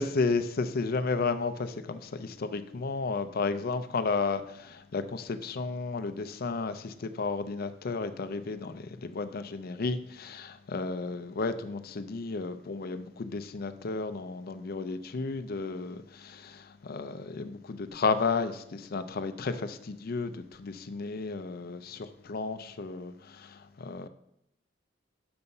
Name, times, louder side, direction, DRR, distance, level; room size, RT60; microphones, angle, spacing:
voice 1, 0.0-24.1, left 4 dB, 50° left, 0.5 m, -33 dB
6.9 x 5.5 x 5.4 m
head